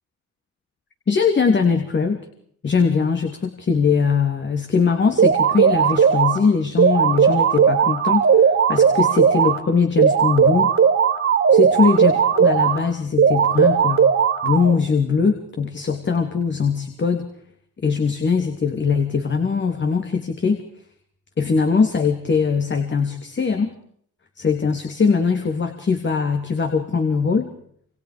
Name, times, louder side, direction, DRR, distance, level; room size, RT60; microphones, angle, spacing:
voice 1, 1.1-2.2 2.6-10.7 11.5-14.0 14.4-17.3 17.8-20.6 21.4-23.7 24.4-27.5, left 5 dB, 40° left, 5 dB, 3.0 m, -21 dB
sound 1, 5.2-6.4 6.8-9.6 10.0-12.8 13.2-14.8, right 7 dB, 45° right, 3.0 m, -17 dB
27.5 x 27.0 x 5.1 m, 0.63 s
cardioid pair, 90°, 30 cm